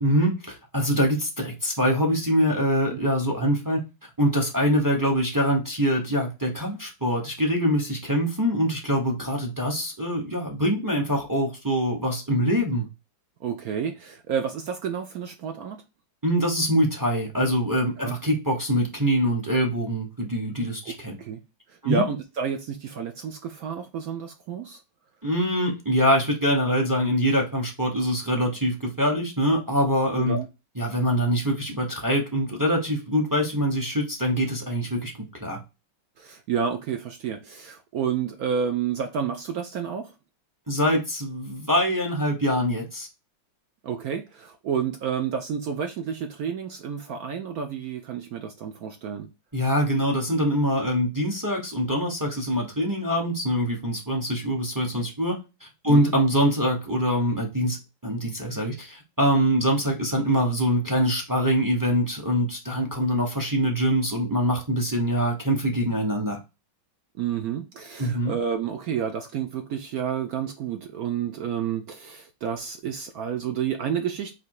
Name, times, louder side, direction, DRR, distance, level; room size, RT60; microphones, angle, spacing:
voice 1, 0.0-3.8 4.2-12.9 16.2-21.2 21.8-22.0 25.2-30.4 30.8-35.1 35.4-35.6 40.7-43.1 49.5-57.8 58.0-66.4 68.0-68.3, equal, 20° right, 0.6 m, -24 dB
voice 2, 13.4-15.8 18.0-18.2 20.9-21.0 21.2-21.4 21.7-24.8 30.2-30.5 36.2-40.1 43.8-49.3 55.9-56.1 67.2-74.3, right 7 dB, 70° right, 0.9 m, -30 dB
4.1 x 2.8 x 4.6 m
omnidirectional pair, 2.0 m